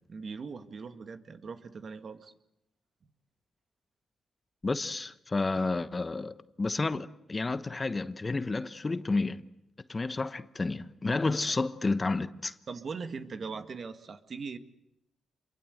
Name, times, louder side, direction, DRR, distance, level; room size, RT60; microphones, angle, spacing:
voice 1, 0.1-2.3 11.5-11.6 12.7-14.6, right 5 dB, 55° right, 1.8 m, -40 dB
voice 2, 4.6-9.4 9.9-12.5, left 3 dB, 30° left, 1.1 m, -31 dB
27.0 x 23.0 x 8.0 m
cardioid pair, 65°, 0 cm